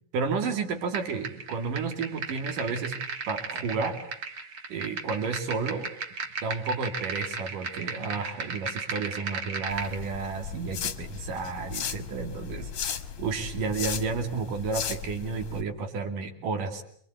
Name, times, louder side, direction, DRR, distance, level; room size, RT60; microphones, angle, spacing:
voice 1, 0.1-4.0 4.7-5.9 6.4-16.8, right 4 dB, 60° right, 6 dB, 4.3 m, -32 dB
sound 1, 0.9-10.0, right 4 dB, 40° right, 2.7 m, -36 dB
sound 2, 9.7-15.6, left 7 dB, 50° left, 2.2 m, -36 dB
28.0 x 24.0 x 8.3 m, 0.65 s
omnidirectional pair, 4.3 m